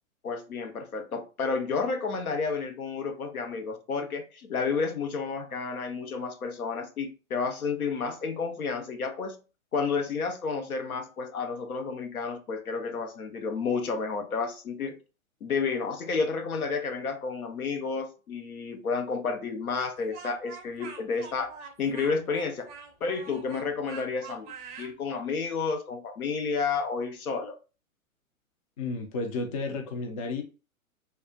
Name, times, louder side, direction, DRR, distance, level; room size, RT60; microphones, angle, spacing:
voice 1, 0.2-9.4 9.7-15.0 15.4-22.7 23.0-27.5, left 5 dB, 80° left, 0.8 m, -31 dB
Speech, 19.8-24.9, right 5 dB, 25° right, 0.6 m, -45 dB
voice 2, 28.8-30.4, left 3 dB, 25° left, 0.3 m, -32 dB
3.4 x 2.3 x 2.6 m
figure-of-eight pair, 110°, 43 cm